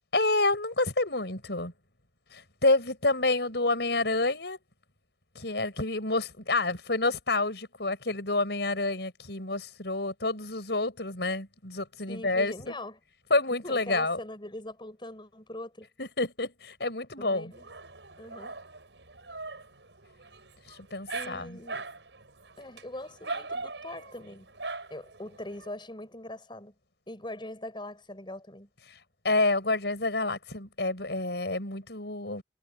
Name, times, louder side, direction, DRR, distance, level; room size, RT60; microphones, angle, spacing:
voice 1, 0.1-1.7 2.3-4.6 5.3-12.5 13.3-14.2 16.0-17.5 20.7-21.6 28.9-29.0 29.2-32.4, left 2 dB, 70° left, 6.4 m, -28 dB
voice 2, 12.1-13.0 13.6-15.9 17.2-17.6 18.2-18.6 21.1-21.9 22.6-24.5 24.9-26.8 27.1-28.7, left 1 dB, 25° left, 7.4 m, -42 dB
Dog, 17.5-25.7, right 3 dB, 85° right, 6.4 m, -41 dB
head